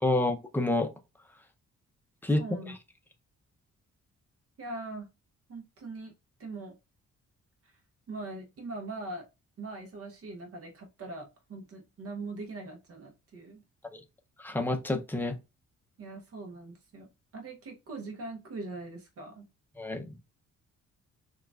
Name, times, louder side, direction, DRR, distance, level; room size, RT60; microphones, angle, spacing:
voice 1, 0.0-0.9 2.2-2.4 13.8-14.0 14.4-15.3 19.8-20.1, left 2 dB, 5° left, 0.5 m, -28 dB
voice 2, 2.4-2.7 4.6-5.1 5.5-6.1 6.4-6.8 8.1-9.3 9.6-13.6 16.0-17.1 17.3-19.5, right 2 dB, 50° right, 0.8 m, -41 dB
6.3 x 2.3 x 2.3 m
cardioid pair, 140°, 30 cm